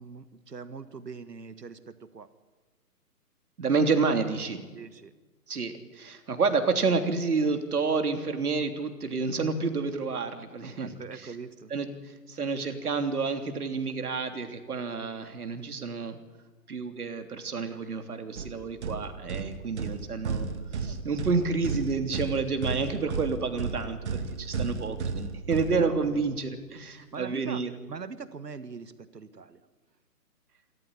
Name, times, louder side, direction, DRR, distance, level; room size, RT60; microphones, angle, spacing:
voice 1, 0.0-2.3 4.7-5.1 10.8-11.7 25.8-26.2 27.1-27.6 27.9-29.6, right 5 dB, 85° right, 13 dB, 1.7 m, -42 dB
voice 2, 3.6-4.6 5.5-11.3 11.7-16.2 16.7-20.5 20.7-27.7, right 4 dB, 65° right, 7 dB, 3.4 m, -29 dB
sound 1, 18.4-26.4, right 4 dB, 45° right, 2.2 m, -34 dB
27.5 x 14.0 x 10.0 m, 1.3 s
hypercardioid pair, 150°, 48 cm